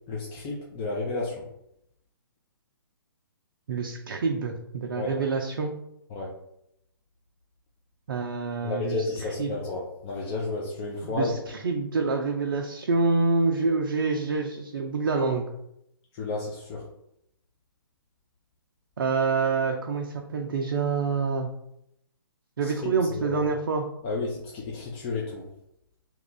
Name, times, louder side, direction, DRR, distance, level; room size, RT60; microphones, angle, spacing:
voice 1, 0.1-1.5 4.9-5.2 6.1-6.3 8.6-11.4 16.1-16.8 22.6-23.4 24.0-25.4, left 3 dB, 25° left, -4 dB, 0.6 m, -32 dB
voice 2, 3.7-5.7 8.1-9.1 9.4-9.5 11.0-15.5 19.0-21.5 22.6-23.9, right 4 dB, 60° right, 2 dB, 0.4 m, -27 dB
2.9 x 2.3 x 3.8 m, 0.78 s
figure-of-eight pair, 125°, 13 cm